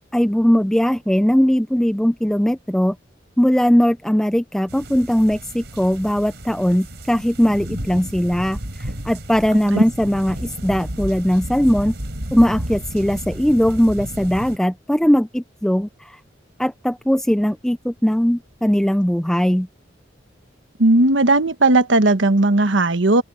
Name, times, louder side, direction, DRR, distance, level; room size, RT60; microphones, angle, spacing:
voice 1, 0.1-3.0 3.4-11.9 12.3-16.2 16.6-19.7, equal, 5° left, 0.4 m, -19 dB
sound 1, 4.7-14.6, right 1 dB, 65° right, 4.9 m, -32 dB
voice 2, 20.8-23.2, right 2 dB, 85° right, 1.3 m, -16 dB
open air
head